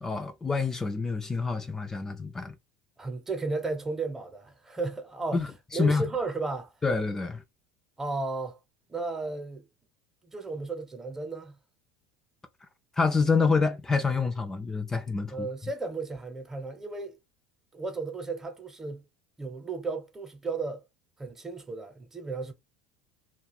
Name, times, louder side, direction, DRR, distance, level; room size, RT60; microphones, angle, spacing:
voice 1, 0.0-2.6 5.3-6.0 6.8-7.4 13.0-15.5, left 4 dB, 20° left, 0.4 m, -27 dB
voice 2, 3.0-5.5 5.7-6.7 8.0-8.6 8.9-9.7 10.2-11.6 15.3-17.2 17.7-19.0 19.4-20.8 21.2-22.5, right 3 dB, 15° right, 0.9 m, -34 dB
2.3 x 2.3 x 3.3 m
hypercardioid pair, 75°, 3 cm